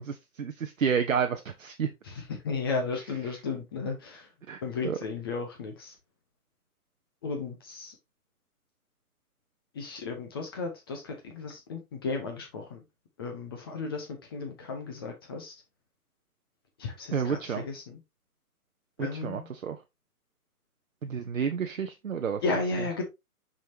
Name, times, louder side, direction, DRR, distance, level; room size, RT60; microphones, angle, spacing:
voice 1, 0.1-1.9 4.5-5.0 17.1-17.6 19.0-19.8 21.0-22.4, right 7 dB, 60° right, 0.8 m, -30 dB
voice 2, 2.0-4.3 4.6-5.9 7.2-7.9 9.7-12.8 13.2-15.5 16.8-18.0 19.0-19.5 22.4-23.0, left 4 dB, 15° left, 0.7 m, -34 dB
6.2 x 5.6 x 2.7 m
figure-of-eight pair, 135°, 46 cm